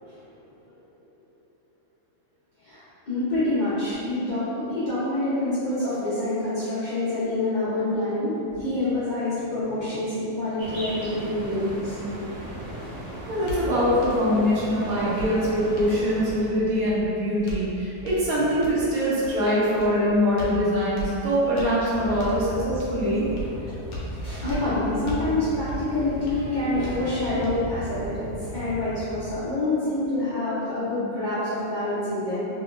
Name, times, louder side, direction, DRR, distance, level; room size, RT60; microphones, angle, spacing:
voice 1, 2.6-12.0 23.6-32.5, left 2 dB, 45° left, -14 dB, 0.6 m, -27 dB
sound 1, 10.6-16.5, right 1 dB, 55° right, 1.4 m, -37 dB
sound 2, 12.8-28.4, right 2 dB, 70° left, 1.0 m, -39 dB
voice 2, 13.3-23.3, equal, 70° right, -8 dB, 1.2 m, -23 dB
sound 3, 21.8-29.4, equal, 90° left, 0.4 m, -37 dB
3.4 x 2.8 x 2.4 m, 2.9 s
omnidirectional pair, 1.6 m